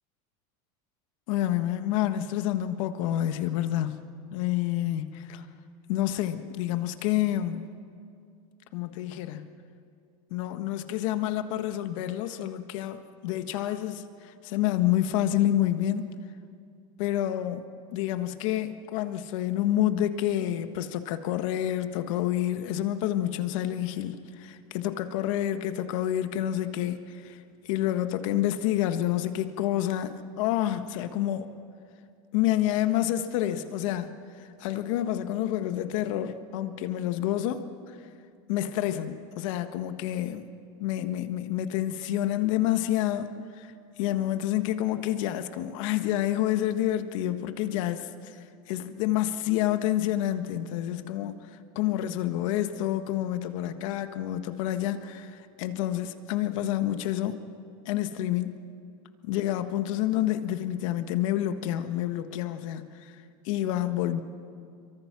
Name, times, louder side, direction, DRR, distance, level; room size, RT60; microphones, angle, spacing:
voice 1, 1.3-4.0 4.3-5.4 5.9-7.7 8.7-9.5 10.3-16.1 17.0-27.4 27.6-31.5 32.3-34.1 34.4-37.6 38.5-40.5 40.8-43.3 43.6-43.7 44.0-48.3 48.7-51.4 51.7-57.4 57.8-58.7 59.2-63.1 63.4-64.2, left 12 dB, 65° left, 9 dB, 1.5 m, -28 dB
27.0 x 23.5 x 6.1 m, 2.3 s
supercardioid pair, 145°, 18 cm